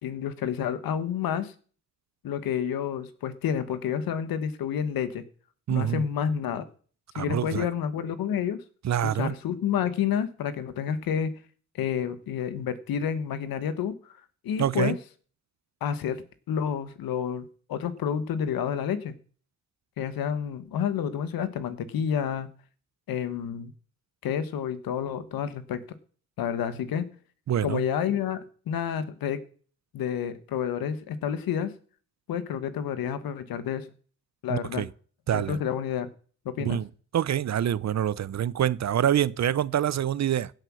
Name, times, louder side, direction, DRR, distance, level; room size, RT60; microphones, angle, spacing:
voice 1, 0.0-1.5 2.2-5.2 5.7-6.7 7.1-8.6 9.0-11.3 11.7-14.1 14.4-15.0 15.8-19.1 20.0-22.5 23.1-23.7 24.2-25.8 26.4-27.0 27.6-29.4 29.9-31.7 32.3-33.9 34.4-34.9 35.3-36.1 36.4-36.8, left 8 dB, 80° left, 1.5 m, -29 dB
voice 2, 5.7-6.0 7.1-7.7 8.8-9.4 14.6-15.0 27.5-27.8 34.5-34.9 35.3-35.6 36.6-36.9 37.1-40.5, right 10 dB, 50° right, 0.7 m, -26 dB
16.5 x 8.0 x 6.3 m
cardioid pair, 65°, 35 cm